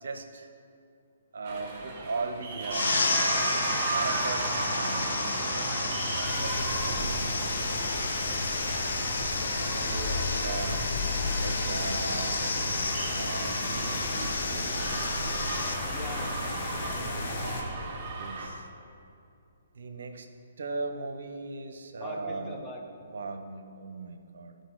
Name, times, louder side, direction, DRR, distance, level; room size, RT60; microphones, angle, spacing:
voice 1, 0.0-0.5 1.3-3.3 3.9-7.6 9.5-10.8 11.4-12.6 13.1-14.7 18.1-18.7 19.7-20.3 20.6-22.6 23.0-24.5, right 3 dB, 65° right, 7 dB, 0.7 m, -38 dB
sound 1, 1.4-18.5, right 3 dB, 30° right, 1.8 m, -35 dB
sound 2, 2.7-15.7, left 3 dB, 70° left, 0.9 m, -32 dB
sound 3, 6.2-17.6, left 2 dB, 50° left, 1.3 m, -34 dB
voice 2, 15.8-17.1 22.0-22.8, left 1 dB, 10° left, -2 dB, 1.0 m, -43 dB
12.0 x 5.1 x 3.8 m, 2.5 s
figure-of-eight pair, 135°, 0 cm